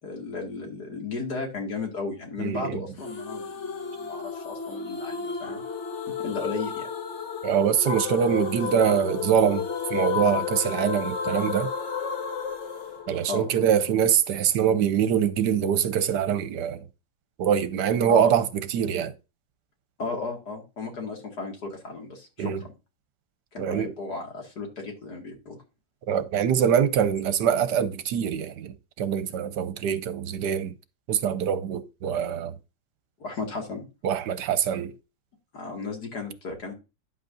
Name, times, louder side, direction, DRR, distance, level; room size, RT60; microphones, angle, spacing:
voice 1, 0.0-5.6 6.2-6.9 13.3-13.5 18.1-18.3 20.0-22.5 23.5-25.6 33.2-33.9 35.5-36.7, left 4 dB, 65° left, 2.8 m, -34 dB
voice 2, 2.4-2.8 7.4-11.7 13.1-16.8 17.4-19.1 22.4-22.6 23.6-23.9 26.1-30.7 31.1-32.6 34.0-34.9, right 8 dB, 75° right, 1.3 m, -24 dB
sound 1, 3.0-14.0, left 6 dB, 45° left, 1.2 m, -32 dB
10.0 x 8.0 x 2.6 m
omnidirectional pair, 1.9 m